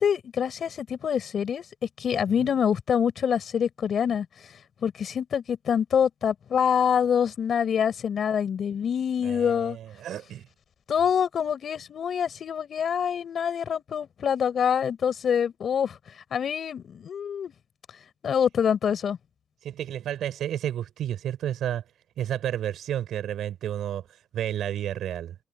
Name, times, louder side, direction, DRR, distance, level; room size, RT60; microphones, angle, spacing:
voice 1, 0.0-1.6 2.0-4.3 4.8-9.8 10.9-15.9 16.3-17.5 18.2-19.2, left 8 dB, 40° left, 6.5 m, -25 dB
voice 2, 9.2-10.5 19.6-21.8 22.2-24.0 24.3-25.3, right 11 dB, 55° right, 4.8 m, -31 dB
cardioid pair, 160°, 0 cm